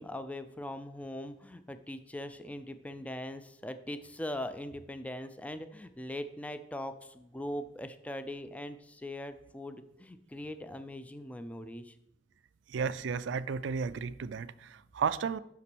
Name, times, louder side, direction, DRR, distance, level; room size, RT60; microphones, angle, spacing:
voice 1, 0.0-12.0, left 1 dB, 10° left, 0.3 m, -41 dB
voice 2, 12.7-15.4, right 6 dB, 75° right, 0.4 m, -33 dB
6.0 x 5.7 x 6.1 m
head